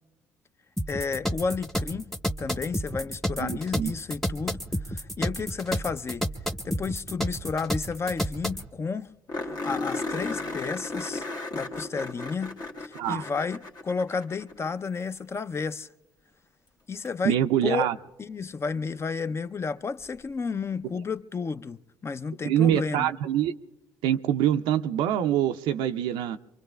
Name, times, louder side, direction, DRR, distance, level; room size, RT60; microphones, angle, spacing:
sound 1, 0.8-8.7, equal, 5° left, 0.8 m, -30 dB
voice 1, 0.9-2.1 2.4-6.3 6.6-9.1 9.4-11.3 11.5-15.9 16.9-17.4 17.6-17.9 18.2-23.1, left 5 dB, 30° left, 0.4 m, -32 dB
voice 2, 3.4-3.9 12.9-13.2 17.2-18.0 22.4-23.5 24.0-26.4, right 11 dB, 70° right, 0.4 m, -25 dB
sound 2, 7.9-8.0 8.2-8.3 8.6-8.7 9.3-14.7 17.1-17.2 20.0-20.1, left 2 dB, 50° left, 1.2 m, -35 dB
25.0 x 24.0 x 2.3 m
hypercardioid pair, 55°, 9 cm